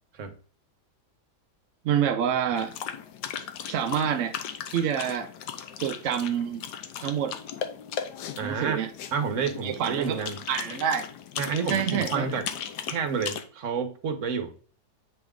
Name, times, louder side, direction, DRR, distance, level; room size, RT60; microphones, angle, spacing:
voice 1, 1.8-2.7 3.7-4.3 4.7-5.3 5.8-6.6 7.0-7.3 8.4-8.9 9.6-11.1 11.7-12.3, right 8 dB, 70° right, 0.7 m, -27 dB
sound 1, 2.5-13.4, left 8 dB, 80° left, 1.3 m, -37 dB
voice 2, 8.4-8.8 9.1-10.4 11.4-12.5 12.9-14.5, right 6 dB, 55° right, 1.1 m, -29 dB
7.9 x 3.4 x 3.6 m
omnidirectional pair, 1.8 m